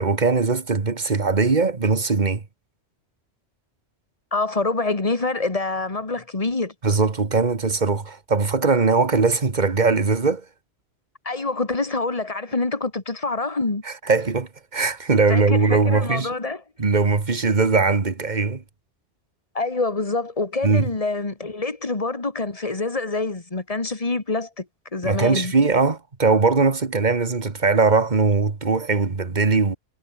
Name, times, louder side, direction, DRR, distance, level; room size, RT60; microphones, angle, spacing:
voice 1, 0.0-2.4 6.8-10.4 13.9-16.3 16.8-18.6 20.6-20.9 25.0-29.8, right 4 dB, 40° right, 1.7 m, -20 dB
voice 2, 4.3-6.7 11.3-13.8 15.3-16.6 19.5-24.7 24.9-25.5, left 3 dB, 30° left, 2.1 m, -26 dB
omnidirectional pair, 1.2 m